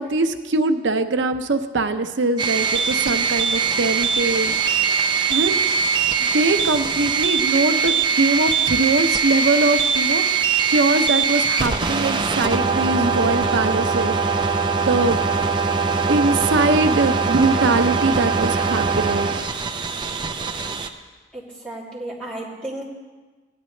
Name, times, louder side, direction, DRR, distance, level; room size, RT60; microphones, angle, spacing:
voice 1, 0.0-4.5 5.3-5.6 6.2-10.2 10.7-14.5 14.8-15.2 16.1-19.4, right 3 dB, 80° right, 8 dB, 0.7 m, -22 dB
sound 1, 2.4-20.9, right 5 dB, 25° right, 0.5 m, -21 dB
voice 2, 21.3-22.8, right 1 dB, 5° left, -8 dB, 2.9 m, -33 dB
16.5 x 10.5 x 3.2 m, 1.3 s
head